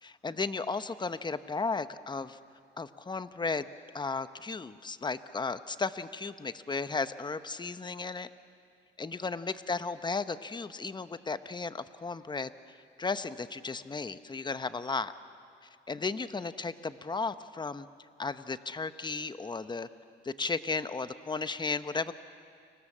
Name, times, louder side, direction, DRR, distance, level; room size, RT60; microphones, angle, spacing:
voice 1, 0.0-2.4 2.8-3.7 3.9-8.3 9.0-12.5 13.0-15.1 15.9-17.9 18.2-19.9 20.2-22.2, left 4 dB, 20° left, 12 dB, 1.0 m, -34 dB
30.0 x 26.0 x 7.5 m, 2.3 s
cardioid pair, 90°, 20 cm